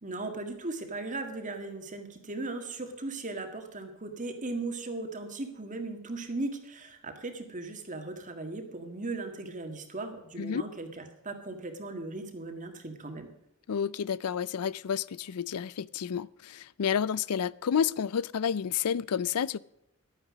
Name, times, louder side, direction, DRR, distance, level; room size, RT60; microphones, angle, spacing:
voice 1, 0.0-13.3, right 2 dB, 35° right, 1.8 m, -37 dB
voice 2, 13.7-19.6, left 7 dB, 85° left, 0.5 m, -30 dB
12.0 x 9.5 x 6.2 m
head